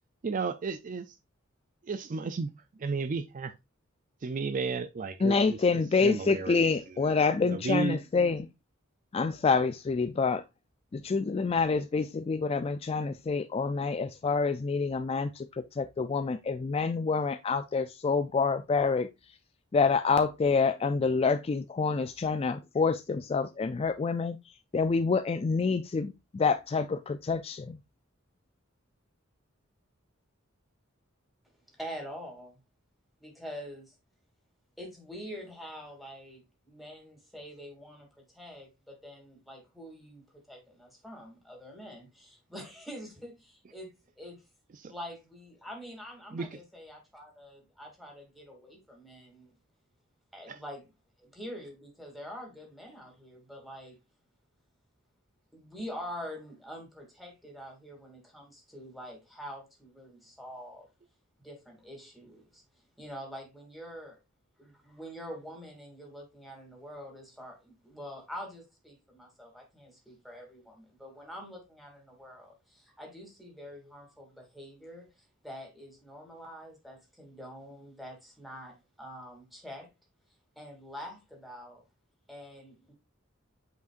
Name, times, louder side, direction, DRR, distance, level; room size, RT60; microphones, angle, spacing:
voice 1, 0.2-1.2 1.8-2.5 2.8-3.5 4.2-5.6 6.0-7.1 7.4-8.0 44.7-44.9 46.3-46.6 50.5-50.6, right 4 dB, 40° right, 0.4 m, -33 dB
voice 2, 5.2-8.5 9.1-10.4 10.9-19.3 19.7-24.4 24.7-27.8, left 4 dB, 30° left, 0.3 m, -27 dB
voice 3, 31.8-32.6 33.2-33.9 34.8-44.4 44.9-49.5 50.3-50.8 51.2-54.0 55.5-60.9 61.4-62.6 63.0-64.2 64.6-79.9 80.6-81.8 82.3-82.9, equal, ahead, 2.5 m, -45 dB
8.1 x 5.1 x 2.5 m
head